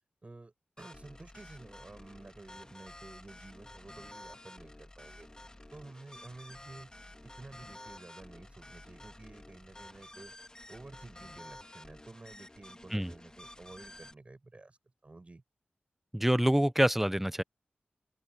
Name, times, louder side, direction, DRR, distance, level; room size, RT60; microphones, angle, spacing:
voice 1, 0.2-5.3 5.7-6.9 7.2-10.3 10.7-14.8 15.0-15.4, right 2 dB, 35° right, 5.7 m, -51 dB
sound 1, 0.8-14.1, left 1 dB, 20° left, 1.8 m, -51 dB
voice 2, 16.1-17.4, equal, 5° right, 0.7 m, -26 dB
wide cardioid pair, 70°, 4 cm